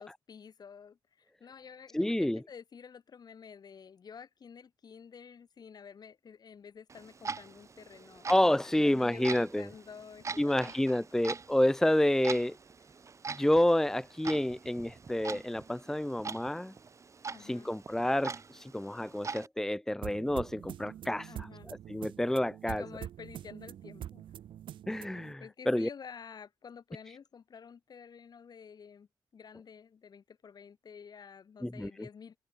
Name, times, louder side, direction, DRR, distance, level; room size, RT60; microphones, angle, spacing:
voice 1, 0.0-11.0 17.3-17.7 21.3-21.7 22.7-24.2 25.4-29.1 29.3-32.4, left 6 dB, 55° left, 6.5 m, -50 dB
voice 2, 1.9-2.4 8.3-9.7 10.4-12.6 13.3-16.7 17.4-22.8 24.9-25.9 31.6-31.9, left 1 dB, 5° left, 0.7 m, -29 dB
Clock, 6.9-19.5, right 5 dB, 40° right, 1.5 m, -43 dB
sound 1, 20.0-25.3, right 11 dB, 85° right, 1.3 m, -45 dB
open air
cardioid pair, 100°, 8 cm